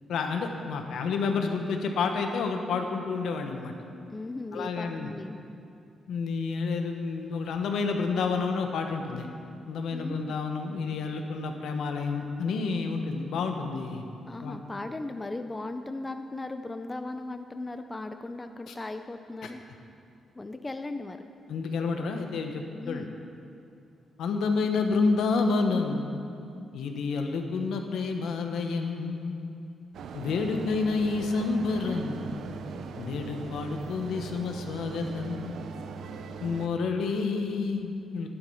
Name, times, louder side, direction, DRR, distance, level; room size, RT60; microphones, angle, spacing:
voice 1, 0.1-3.7 4.5-5.1 6.1-9.3 9.7-14.1 14.4-14.6 18.7-18.8 19.4-19.5 21.5-23.0 24.2-26.2 26.7-29.5 30.1-32.6 33.0-35.7 36.4-38.3, left 4 dB, 80° left, 4 dB, 1.1 m, -29 dB
voice 2, 4.1-5.4 9.9-10.4 14.3-19.6 20.3-21.2 22.7-23.1, left 2 dB, 15° left, 7 dB, 0.4 m, -37 dB
sound 1, 29.9-36.7, right 5 dB, 70° right, 0.6 m, -40 dB
11.0 x 11.0 x 5.6 m, 2.5 s
wide cardioid pair, 165°, 0 cm